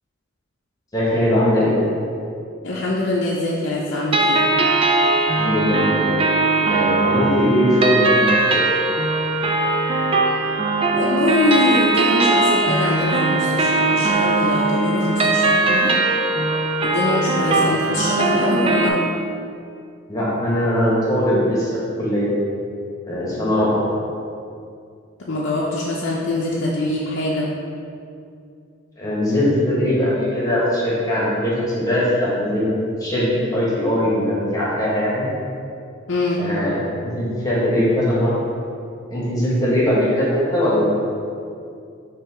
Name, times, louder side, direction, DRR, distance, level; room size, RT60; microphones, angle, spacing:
voice 1, 0.9-1.7 5.4-6.1 6.6-8.6 20.1-21.7 22.0-22.3 23.1-23.8 29.0-32.7 33.0-35.2 36.4-38.3 39.1-40.3 40.5-40.9, left 1 dB, 20° left, -7 dB, 1.4 m, -20 dB
voice 2, 2.6-4.5 10.9-15.9 16.8-18.9 25.2-27.5 36.1-36.4, left 2 dB, 60° left, -5 dB, 0.6 m, -23 dB
sound 1, 4.1-18.9, right 2 dB, 25° right, 0.4 m, -19 dB
5.9 x 3.4 x 4.8 m, 2.4 s
head